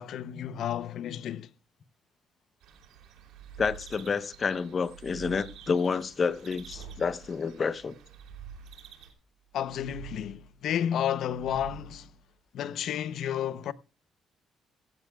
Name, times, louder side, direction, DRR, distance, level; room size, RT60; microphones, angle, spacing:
voice 1, 0.0-1.5 6.8-6.9 9.5-12.1 12.5-13.7, left 10 dB, 75° left, 0.7 m, -32 dB
sound 1, 2.6-9.1, right 8 dB, 85° right, 3.2 m, -53 dB
sound 2, 3.1-4.2 4.7-5.8 6.3-7.4 7.9-9.0 9.5-10.6 11.1-12.2, right 7 dB, 15° right, 4.3 m, -48 dB
voice 2, 3.6-7.9, left 5 dB, 40° left, 1.0 m, -29 dB
15.5 x 15.0 x 2.3 m
cardioid pair, 90°, 0 cm